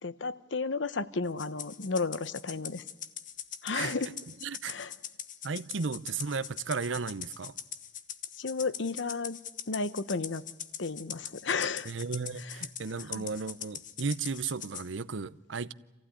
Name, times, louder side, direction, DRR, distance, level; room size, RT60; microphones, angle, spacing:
voice 1, 0.0-2.8 3.6-4.1 4.6-4.9 8.4-9.4 9.7-10.4 10.8-11.9 12.4-12.6 13.1-13.3, left 4 dB, 80° left, 0.9 m, -33 dB
Rattle (instrument), 1.4-14.9, left 9 dB, 45° left, 1.2 m, -42 dB
voice 2, 4.4-4.7 5.4-7.5 11.9-15.7, right 5 dB, 85° right, 0.7 m, -34 dB
27.0 x 15.5 x 10.0 m
head